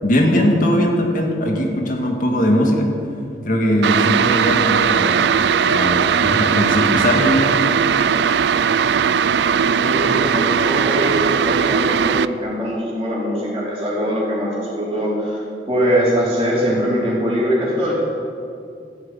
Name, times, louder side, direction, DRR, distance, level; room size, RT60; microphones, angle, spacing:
voice 1, 0.0-2.9 3.4-7.6, equal, 50° left, 1 dB, 2.0 m, -19 dB
Boil water (Electric kettle), 3.8-12.3, right 7 dB, 70° right, 0.4 m, -18 dB
voice 2, 9.6-18.0, equal, 25° right, -9 dB, 3.4 m, -22 dB
14.0 x 9.5 x 9.0 m, 2.5 s
head